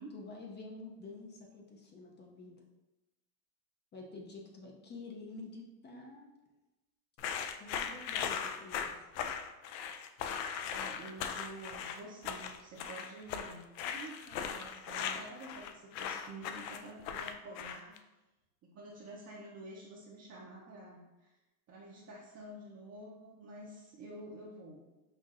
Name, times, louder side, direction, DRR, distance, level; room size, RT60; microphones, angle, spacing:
voice 1, 0.1-2.6 3.9-6.3 7.6-9.1, left 3 dB, 25° left, 0 dB, 0.4 m, -49 dB
sound 1, 7.2-18.0, left 7 dB, 85° left, 0.6 m, -39 dB
voice 2, 10.4-18.0 18.6-21.4 21.7-24.8, right 2 dB, 30° right, -4 dB, 0.6 m, -49 dB
5.6 x 2.6 x 2.4 m, 1.0 s
supercardioid pair, 115°, 50 cm